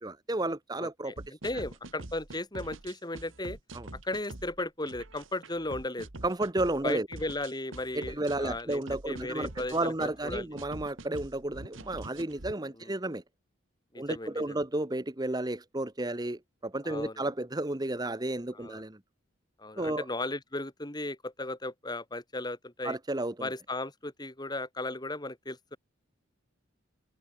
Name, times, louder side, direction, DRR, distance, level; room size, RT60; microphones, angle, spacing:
voice 1, 0.0-1.1 3.7-3.9 6.2-7.1 7.9-13.2 14.0-19.0 19.8-20.0 22.8-23.5, right 2 dB, 20° right, 1.0 m, -32 dB
voice 2, 0.8-1.1 1.4-3.6 3.9-6.1 6.8-10.5 12.8-12.9 13.9-14.6 16.8-17.3 18.5-18.8 19.6-23.0 23.4-25.8, left 2 dB, 20° left, 2.4 m, -36 dB
sound 1, 1.2-12.6, right 2 dB, 75° right, 2.1 m, -45 dB
head